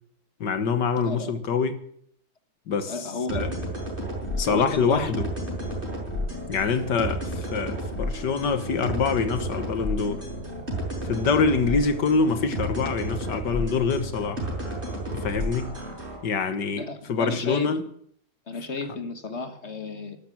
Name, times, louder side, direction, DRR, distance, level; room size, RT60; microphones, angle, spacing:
voice 1, 0.4-1.8 2.7-3.5 4.4-5.3 6.5-10.2 11.0-14.5 15.1-15.7 16.2-17.8, left 5 dB, 60° left, 10 dB, 1.9 m, -25 dB
voice 2, 1.0-1.3 2.9-3.6 4.5-5.1 16.8-17.8 18.5-20.2, left 3 dB, 40° left, 9 dB, 1.4 m, -33 dB
sound 1, 3.3-16.2, equal, 25° right, 6.1 m, -32 dB
12.5 x 12.0 x 8.7 m, 0.65 s
omnidirectional pair, 2.1 m